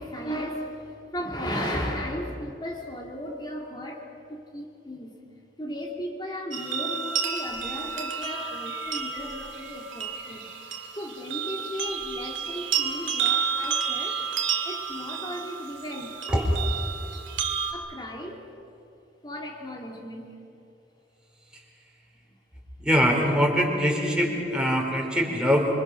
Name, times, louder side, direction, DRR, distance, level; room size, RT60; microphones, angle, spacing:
voice 1, 0.0-5.2 5.6-10.5 10.9-14.2 14.6-16.5 17.7-18.5 19.2-20.3, equal, 25° left, 0 dB, 2.4 m, -35 dB
sound 1, 6.5-17.7, right 6 dB, 90° right, 2.4 m, -31 dB
voice 2, 22.8-25.7, equal, 5° right, -2 dB, 4.2 m, -23 dB
26.5 x 26.0 x 6.3 m, 2.6 s
head